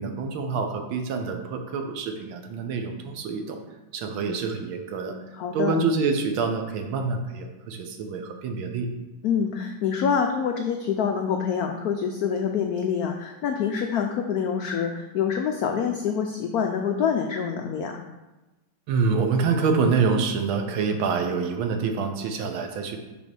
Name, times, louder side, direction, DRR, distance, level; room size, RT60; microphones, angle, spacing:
voice 1, 0.0-3.6 3.9-5.2 5.5-8.9 18.9-23.0, right 4 dB, 85° right, 5 dB, 1.6 m, -26 dB
voice 2, 5.3-5.7 9.2-18.0, left 7 dB, 85° left, 4 dB, 0.8 m, -26 dB
6.1 x 3.5 x 6.0 m, 1.1 s
omnidirectional pair, 2.2 m